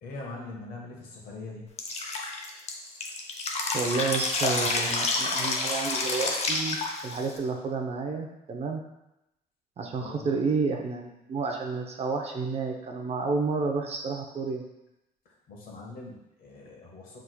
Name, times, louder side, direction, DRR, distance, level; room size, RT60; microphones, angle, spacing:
voice 1, 0.0-1.7 10.0-10.3 15.5-17.2, left 3 dB, 60° left, -1 dB, 1.2 m, -42 dB
Drip, 1.8-7.4, left 3 dB, 40° left, 0.7 m, -29 dB
voice 2, 3.7-6.8 7.0-8.8 9.8-14.6, right 4 dB, 40° right, 2 dB, 0.6 m, -30 dB
6.3 x 3.5 x 2.2 m, 0.89 s
cardioid pair, 110°, 17 cm